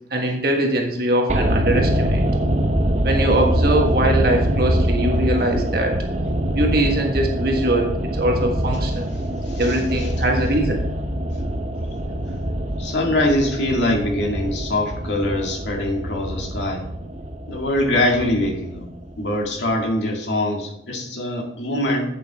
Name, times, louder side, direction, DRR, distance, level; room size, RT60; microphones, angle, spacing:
voice 1, 0.1-2.2 3.0-6.0 6.5-9.1 9.6-10.8, right 1 dB, 55° right, 2 dB, 1.6 m, -22 dB
sound 1, 1.3-19.5 19.7-19.8, equal, 40° right, 0.9 m, -24 dB
voice 2, 9.5-10.1 12.8-16.8 17.5-18.9 19.2-22.1, left 1 dB, 85° left, 0 dB, 2.0 m, -23 dB
8.3 x 7.9 x 3.6 m, 0.79 s
head